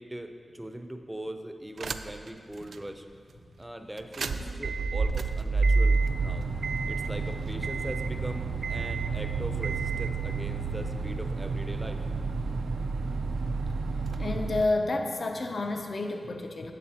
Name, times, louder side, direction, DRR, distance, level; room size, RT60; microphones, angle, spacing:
voice 1, 0.0-3.1 3.6-6.5 6.9-12.0, right 1 dB, 10° right, 6 dB, 0.5 m, -40 dB
sound 1, 1.8-2.3 2.7-2.8 4.0-14.6, right 4 dB, 85° right, 0.3 m, -29 dB
voice 2, 14.2-16.7, left 2 dB, 50° left, 4 dB, 0.6 m, -30 dB
12.5 x 8.3 x 2.8 m, 2.2 s
wide cardioid pair, 140°, 0 cm